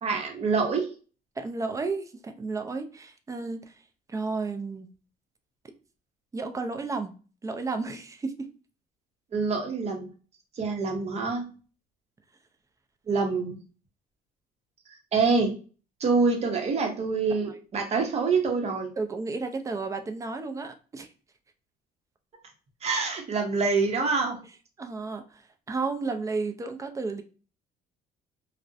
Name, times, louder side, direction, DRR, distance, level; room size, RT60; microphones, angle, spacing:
voice 1, 0.0-0.9 9.3-10.1 10.6-11.5 13.1-13.6 15.1-15.5 16.0-18.9 22.8-24.4, right 4 dB, 40° right, 3 dB, 0.7 m, -26 dB
voice 2, 1.4-3.7 4.1-4.9 6.3-7.1 7.4-8.5 19.0-21.1 24.8-25.4 25.7-27.2, right 3 dB, 20° right, 7 dB, 0.3 m, -32 dB
2.4 x 2.0 x 2.5 m, 0.36 s
cardioid pair, 110°, 17 cm